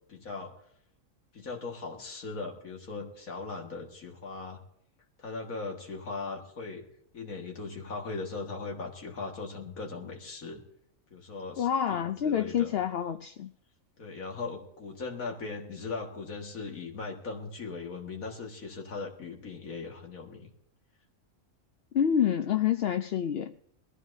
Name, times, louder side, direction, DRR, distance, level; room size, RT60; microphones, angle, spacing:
voice 1, 0.1-0.5 1.3-4.6 5.2-6.9 7.1-10.6 11.1-12.7 14.0-20.5, left 4 dB, 85° left, 2.3 m, -39 dB
voice 2, 11.6-13.5 21.9-23.5, left 9 dB, 60° left, 0.7 m, -27 dB
21.0 x 14.5 x 2.7 m
omnidirectional pair, 1.4 m